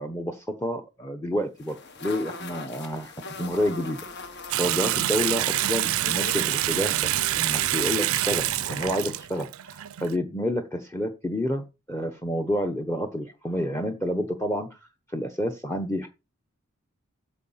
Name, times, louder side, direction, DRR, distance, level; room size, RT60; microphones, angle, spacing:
voice 1, 0.0-4.0 4.6-16.1, equal, 10° left, 7 dB, 1.0 m, -29 dB
sound 1, 1.6-9.0, left 3 dB, 50° left, 1.4 m, -41 dB
Water tap faucet / Sink (filling or washing) / Bathtub (filling or washing), 4.5-10.2, right 14 dB, 70° right, 0.5 m, -26 dB
8.5 x 5.5 x 7.4 m, 0.27 s
head